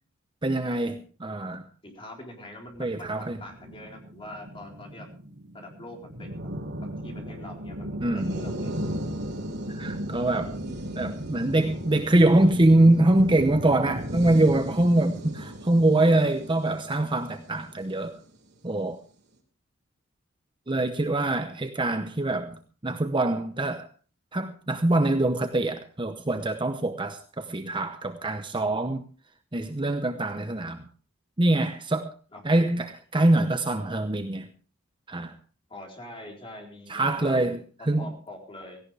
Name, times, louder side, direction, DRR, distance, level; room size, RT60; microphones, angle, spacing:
voice 1, 0.4-1.6 2.8-3.4 8.0-8.4 9.7-10.5 11.0-18.2 18.6-19.0 20.7-23.9 24.3-29.0 29.5-30.9 31.4-32.1 32.4-34.5 35.1-35.4 36.9-38.1, right 2 dB, 25° right, 0.9 m, -24 dB
voice 2, 1.8-5.1 5.5-6.3 7.0-8.7 21.1-21.4 32.3-32.4 35.7-37.4 38.0-38.8, left 1 dB, 25° left, 4.1 m, -43 dB
sound 1, 2.8-18.3, equal, 50° right, 3.1 m, -36 dB
17.0 x 16.5 x 3.4 m
head